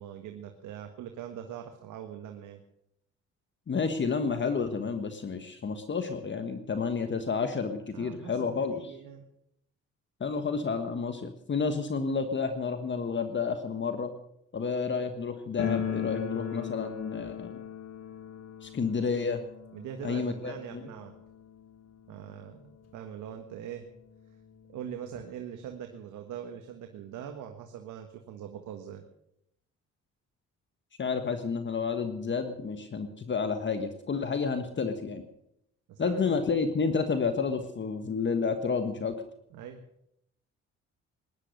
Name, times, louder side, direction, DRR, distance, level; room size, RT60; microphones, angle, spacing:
voice 1, 0.0-2.6 7.9-9.2 19.7-21.1 22.1-23.9 24.7-29.0 35.9-36.4 39.5-39.8, right 9 dB, 85° right, 5 dB, 1.6 m, -42 dB
voice 2, 3.7-8.8 10.2-14.1 14.5-17.6 18.6-19.4 20.0-20.8 31.0-35.2 36.0-39.2, left 5 dB, 40° left, 8 dB, 1.4 m, -30 dB
sound 1, 15.6-22.3 22.6-22.7 22.9-23.0 23.8-23.9 24.1-25.3, left 8 dB, 55° left, 2.3 m, -38 dB
19.0 x 11.0 x 6.6 m, 0.77 s
cardioid pair, 90°, 30 cm